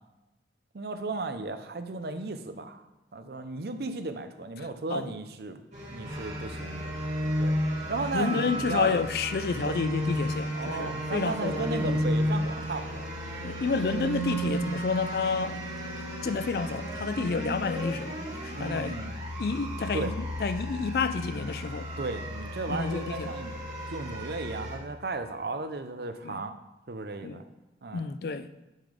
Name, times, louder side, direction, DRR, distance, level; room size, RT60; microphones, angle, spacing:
voice 1, 0.7-2.8 3.1-5.6 5.9-6.9 7.4-7.6 7.9-9.0 9.6-9.8 10.5-13.1 18.5-19.2 19.9-20.1 22.0-23.5 23.9-26.6 26.9-27.5 27.8-28.1, right 3 dB, 60° right, 0.6 m, -35 dB
sound 1, 5.7-24.8, equal, 40° right, 1.8 m, -33 dB
voice 2, 8.1-12.0 13.4-15.6 16.2-18.2 18.4-18.9 19.4-20.1 20.4-21.9 22.7-23.3 26.2-26.4 27.2-27.4 27.9-28.5, left 4 dB, 55° left, 0.4 m, -30 dB
9.1 x 3.8 x 5.1 m
head